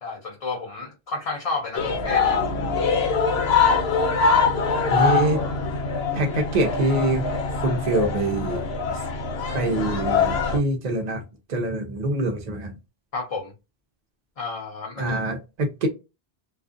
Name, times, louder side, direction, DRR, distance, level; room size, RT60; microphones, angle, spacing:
voice 1, 0.0-2.4 13.1-13.5 14.4-15.2, left 3 dB, 45° left, 0.6 m, -31 dB
sound 1, 1.7-10.6, left 5 dB, 85° left, 1.0 m, -23 dB
voice 2, 4.9-5.4 6.1-7.3 7.6-8.7 9.5-11.2 11.5-12.7 15.0-15.9, right 2 dB, 50° right, 0.6 m, -24 dB
2.4 x 2.3 x 2.4 m
omnidirectional pair, 1.0 m